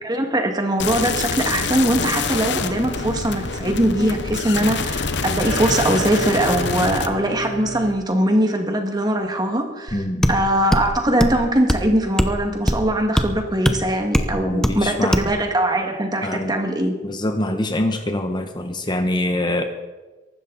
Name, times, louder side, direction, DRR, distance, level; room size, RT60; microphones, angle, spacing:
voice 1, 0.0-17.0, right 1 dB, 20° right, 4 dB, 2.0 m, -21 dB
sound 1, 0.8-7.1, left 4 dB, 70° left, 1.0 m, -25 dB
sound 2, 2.4-7.9, right 1 dB, 85° left, 6.2 m, -34 dB
voice 2, 9.9-10.3 14.3-15.2 16.2-16.5 17.0-19.6, left 1 dB, 25° left, 6 dB, 1.1 m, -24 dB
sound 3, 9.9-10.0 10.2-10.4 10.7-10.9 11.2-11.4 11.7-11.9 12.2-12.4 12.7-12.8 13.2-13.3 13.7-13.8 14.1-14.3 14.6-14.8 15.1-15.3, equal, 5° left, 0.9 m, -19 dB
23.0 x 12.5 x 4.1 m, 1.2 s
head